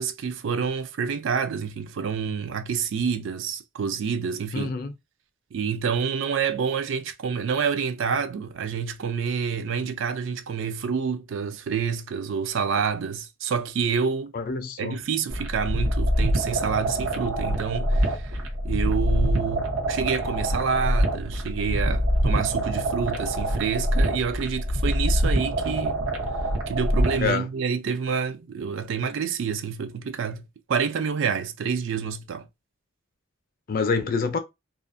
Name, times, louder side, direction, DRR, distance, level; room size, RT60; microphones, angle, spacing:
voice 1, 0.0-4.7 5.5-14.3 14.8-26.0 26.7-30.4 30.7-32.5, right 6 dB, 60° right, 0.3 m, -28 dB
voice 2, 4.5-4.9 14.3-15.0 27.2-27.4 33.7-34.4, left 4 dB, 40° left, 0.4 m, -26 dB
sound 1, 15.3-27.3, equal, 90° right, 0.7 m, -25 dB
2.4 x 2.1 x 2.5 m
head